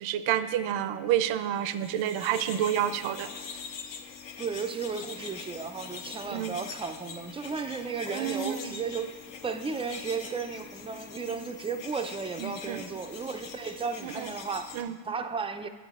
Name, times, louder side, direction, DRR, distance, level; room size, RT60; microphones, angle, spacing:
voice 1, 0.0-3.3 6.3-6.6 8.1-8.8 12.4-12.8 14.0-14.3 14.7-14.9, right 10 dB, 70° right, 12 dB, 0.6 m, -29 dB
sound 1, 1.6-14.8, left 6 dB, 60° left, 1.0 m, -43 dB
voice 2, 4.4-9.1 9.4-14.8 15.0-15.7, right 5 dB, 15° right, 7 dB, 0.3 m, -34 dB
9.4 x 7.3 x 3.6 m, 1.3 s
cardioid pair, 90°, 50 cm